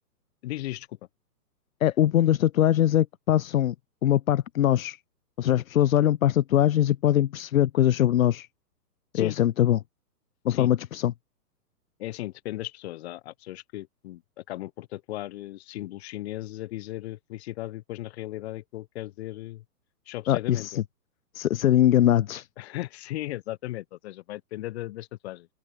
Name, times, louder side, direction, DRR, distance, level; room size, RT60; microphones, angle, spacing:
voice 1, 0.4-1.0 9.1-9.4 10.5-10.7 12.0-19.6 20.1-20.8 22.6-25.5, left 16 dB, 40° left, 4.0 m, -36 dB
voice 2, 1.8-3.7 4.0-5.0 5.4-8.5 9.1-9.8 10.4-11.1 20.3-20.8 21.3-22.5, left 12 dB, 60° left, 1.4 m, -22 dB
open air
hypercardioid pair, 155°, 47 cm